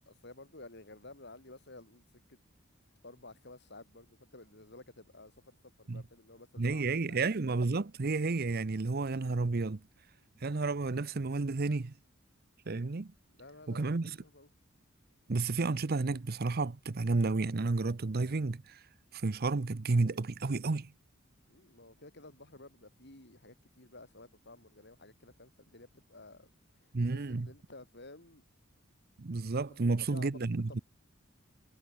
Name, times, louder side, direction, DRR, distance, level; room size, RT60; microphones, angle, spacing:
voice 1, 0.1-2.4 3.0-7.3 13.4-14.5 21.5-28.4 29.7-30.8, left 2 dB, 55° left, 4.6 m, -53 dB
voice 2, 6.6-9.8 10.4-11.9 12.7-13.1 13.7-14.2 15.3-18.8 19.1-20.9 26.9-27.5 29.2-30.8, right 3 dB, 45° right, 0.7 m, -31 dB
head